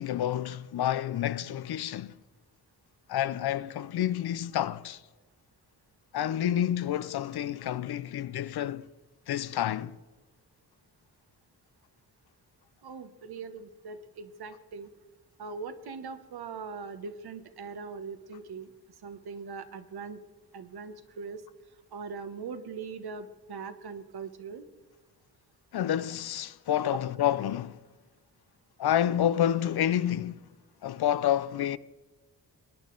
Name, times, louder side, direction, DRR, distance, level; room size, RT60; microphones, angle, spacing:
voice 1, 0.0-2.2 3.1-5.0 6.1-8.9 9.3-10.0 25.7-27.8 28.8-30.4 30.8-31.8, left 11 dB, 80° left, 0.6 m, -29 dB
voice 2, 12.8-14.9 15.4-18.7 19.0-20.2 20.5-21.5 21.9-24.7, right 5 dB, 80° right, 1.1 m, -41 dB
20.5 x 9.4 x 3.9 m
cardioid pair, 70°, 38 cm